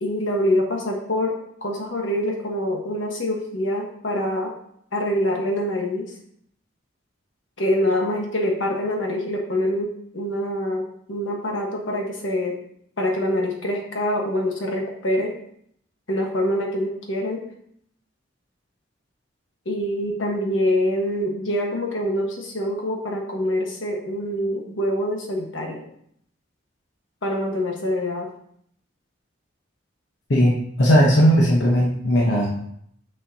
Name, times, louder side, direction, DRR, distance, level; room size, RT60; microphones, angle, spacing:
voice 1, 0.0-4.5 4.9-6.1 7.6-12.6 13.0-15.3 16.1-17.4 19.6-25.8 27.2-28.3, left 1 dB, 85° left, 1 dB, 1.3 m, -25 dB
voice 2, 30.3-32.5, equal, 65° left, -2 dB, 0.9 m, -17 dB
6.5 x 6.3 x 2.8 m, 0.68 s
head